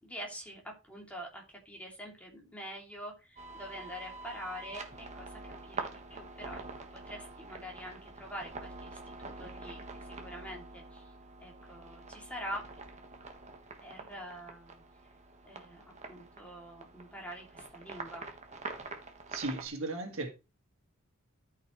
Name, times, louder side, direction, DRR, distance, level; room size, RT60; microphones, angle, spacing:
voice 1, 0.0-11.1 11.4-12.6 13.8-14.8 15.5-18.2, equal, 5° left, 2.7 m, -45 dB
sound 1, 3.4-19.7, right 3 dB, 30° right, 1.4 m, -46 dB
voice 2, 19.3-20.3, right 2 dB, 65° right, 1.9 m, -36 dB
13.5 x 5.8 x 3.1 m
head